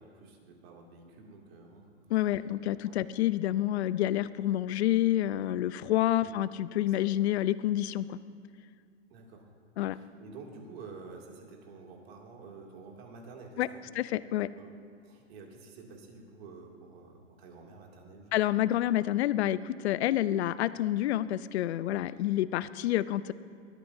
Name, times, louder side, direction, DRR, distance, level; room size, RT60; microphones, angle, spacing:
voice 1, 0.0-2.4 2.8-3.0 6.1-6.3 6.9-7.1 9.1-9.5 9.9-13.9 14.6-14.7 15.0-18.7, right 4 dB, 55° right, 0 dB, 2.5 m, -50 dB
voice 2, 2.1-8.2 9.8-10.0 13.6-13.7 13.9-14.5 18.3-23.3, left 13 dB, 65° left, 16 dB, 0.6 m, -28 dB
20.0 x 13.5 x 2.7 m, 2.3 s
hypercardioid pair, 145°, 35 cm